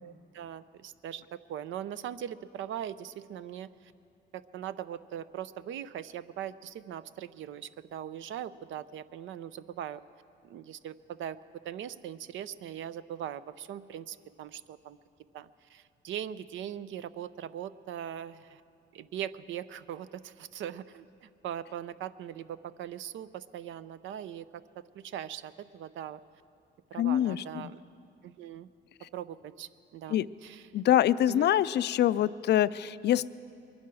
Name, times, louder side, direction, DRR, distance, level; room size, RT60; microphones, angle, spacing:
voice 1, 0.0-3.9 4.3-10.0 10.4-11.4 11.6-15.0 15.3-18.6 18.9-24.5 24.9-26.2 26.9-27.8 28.2-28.7 29.1-30.6 31.3-31.5, right 10 dB, 75° right, 14 dB, 0.5 m, -40 dB
voice 2, 27.0-27.7 30.1-30.3 30.7-33.3, left 12 dB, 60° left, 17 dB, 0.4 m, -25 dB
22.0 x 10.5 x 6.2 m, 2.4 s
cardioid pair, 90°, 20 cm